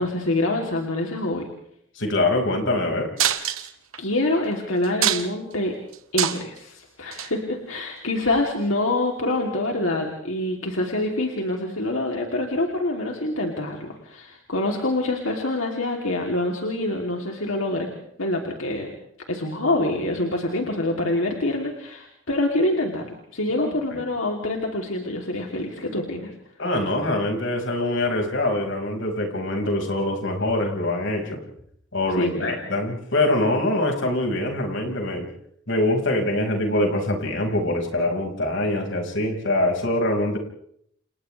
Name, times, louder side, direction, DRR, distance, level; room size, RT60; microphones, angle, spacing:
voice 1, 0.0-1.5 4.0-5.8 6.1-17.9 18.2-18.9 19.3-26.3 32.2-32.6, left 2 dB, 80° left, 1 dB, 3.1 m, -26 dB
voice 2, 2.0-3.1 23.6-24.0 26.6-31.4 31.9-35.3 35.7-40.4, left 1 dB, 60° left, 2 dB, 5.4 m, -24 dB
sound 1, 3.2-4.0 4.4-4.5 4.8-5.5 5.9-6.6 7.1-7.3 8.3-8.4, right 10 dB, 85° right, 1.7 m, -24 dB
29.5 x 29.5 x 3.4 m, 0.68 s
head